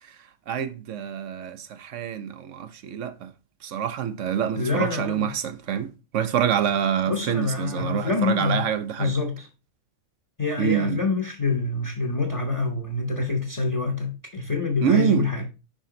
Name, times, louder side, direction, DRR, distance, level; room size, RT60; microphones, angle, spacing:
voice 1, 0.5-3.3 3.6-9.1 10.6-11.0 14.8-15.3, right 8 dB, 70° right, 0.9 m, -26 dB
voice 2, 4.5-5.3 7.1-8.7 9.0-9.5 10.4-15.4, left 3 dB, 30° left, 0.8 m, -26 dB
5.3 x 5.1 x 3.7 m
omnidirectional pair, 1.4 m